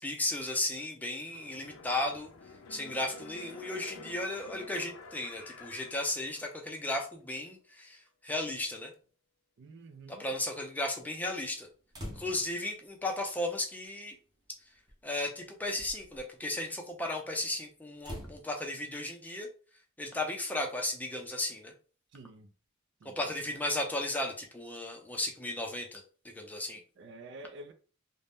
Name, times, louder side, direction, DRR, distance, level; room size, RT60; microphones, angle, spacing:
voice 1, 0.0-2.3 2.7-8.9 10.1-11.7 12.1-14.1 15.0-19.5 20.0-21.7 23.0-26.8, left 1 dB, 10° left, 0.4 m, -35 dB
sound 1, 1.3-6.8 7.2-7.3, left 2 dB, 85° left, 0.5 m, -49 dB
voice 2, 9.6-10.3 22.1-22.5 23.0-23.2 27.0-27.7, right 2 dB, 60° right, 0.4 m, -49 dB
sound 2, 11.9-12.6 13.8-13.9 14.9-15.1 15.6-16.2 18.0-18.4, equal, 20° right, 0.8 m, -44 dB
2.6 x 2.1 x 3.4 m
head